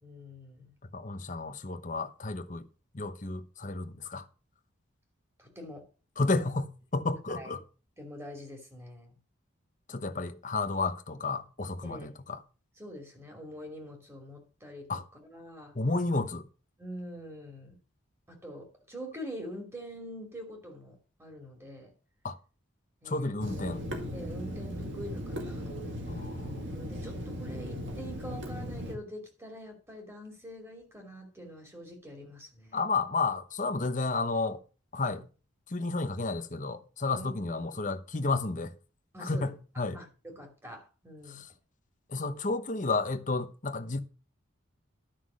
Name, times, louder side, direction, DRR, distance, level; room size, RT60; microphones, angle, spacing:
voice 1, 0.0-0.7 5.4-5.9 7.4-7.5 8.0-9.1 11.8-12.1 12.8-15.7 16.8-17.8 18.3-21.9 23.0-23.3 24.1-25.6 26.7-32.8 35.0-35.2 37.1-37.3 37.7-37.8 39.1-39.5 39.9-41.4, equal, 10° right, 2.8 m, -45 dB
voice 2, 0.9-2.7 2.9-4.3 6.2-7.6 9.9-12.4 14.9-15.0 15.7-16.4 22.2-22.4 23.0-23.8 26.1-26.6 32.7-34.6 34.9-35.3 35.7-38.7 39.2-40.0 41.3-41.5 42.1-44.0, left 3 dB, 35° left, 0.9 m, -32 dB
Water tap faucet / Sink (filling or washing), 23.4-28.9, equal, 60° right, 2.1 m, -37 dB
11.5 x 6.0 x 6.3 m
head